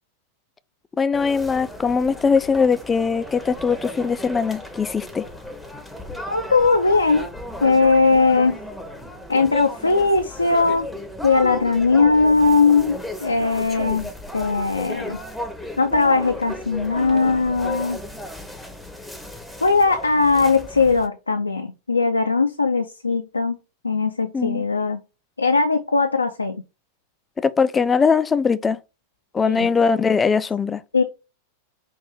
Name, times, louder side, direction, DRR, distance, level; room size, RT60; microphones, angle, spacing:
voice 1, 1.0-5.3 24.3-24.6 27.4-28.8 29.3-30.8, left 5 dB, 15° left, 0.3 m, -21 dB
sound 1, 1.1-21.1, left 1 dB, ahead, 0.8 m, -35 dB
voice 2, 6.3-7.3 7.6-8.6 9.3-10.9 11.2-15.2 15.8-18.0 19.6-23.6 23.8-25.0 25.4-26.6 29.5-29.7 30.9-31.0, left 4 dB, 80° left, 0.4 m, -19 dB
5.4 x 2.5 x 3.7 m
figure-of-eight pair, 90°, 0 cm